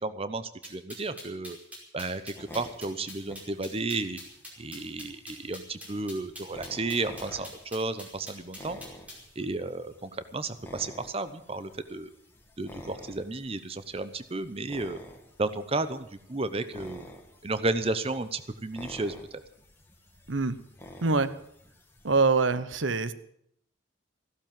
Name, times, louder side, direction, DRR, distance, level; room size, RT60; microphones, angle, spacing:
voice 1, 0.0-1.6 1.9-4.2 4.6-8.8 9.4-12.1 12.6-15.0 15.4-17.1 17.4-19.4, right 2 dB, 30° right, 12 dB, 0.8 m, -33 dB
sound 1, 0.6-9.3, left 1 dB, 10° right, 5.2 m, -45 dB
sound 2, 2.3-22.2, left 1 dB, 10° left, 2.3 m, -50 dB
voice 2, 22.0-23.1, right 4 dB, 85° right, 14 dB, 0.9 m, -24 dB
15.0 x 12.0 x 7.6 m, 0.69 s
head